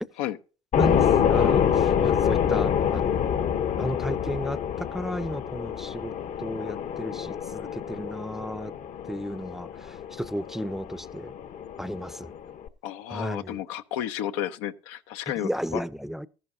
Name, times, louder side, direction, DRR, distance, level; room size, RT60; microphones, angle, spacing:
sound 1, 0.7-12.7, left 8 dB, 55° left, 1.0 m, -26 dB
voice 1, 0.8-3.4 3.8-6.1 6.4-8.7 9.1-11.3 11.8-12.3 13.1-13.6 15.4-16.3, equal, ahead, 0.6 m, -33 dB
voice 2, 12.8-15.8, left 11 dB, 80° left, 0.8 m, -32 dB
14.0 x 11.0 x 2.7 m
hypercardioid pair, 75°, 16 cm